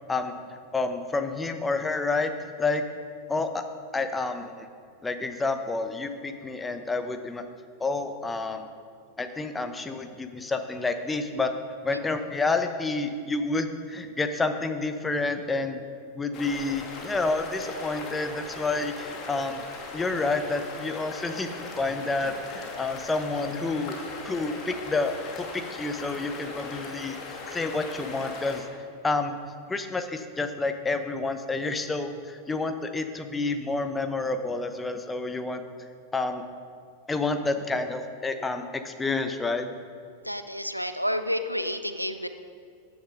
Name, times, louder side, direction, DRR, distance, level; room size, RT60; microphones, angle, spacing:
voice 1, 0.7-2.8 3.3-3.6 3.9-4.7 5.0-7.4 7.8-8.7 9.2-11.5 11.8-15.8 16.1-19.6 19.9-24.0 24.2-28.7 29.0-29.4 29.7-35.6 36.1-36.4 37.1-39.7, left 3 dB, 10° left, 7 dB, 1.0 m, -29 dB
sound 1, 16.3-28.6, left 3 dB, 35° left, 2.2 m, -39 dB
voice 2, 40.2-42.3, equal, 90° right, 10 dB, 0.7 m, -30 dB
15.0 x 9.7 x 5.2 m, 2.2 s
figure-of-eight pair, 90°, 0 cm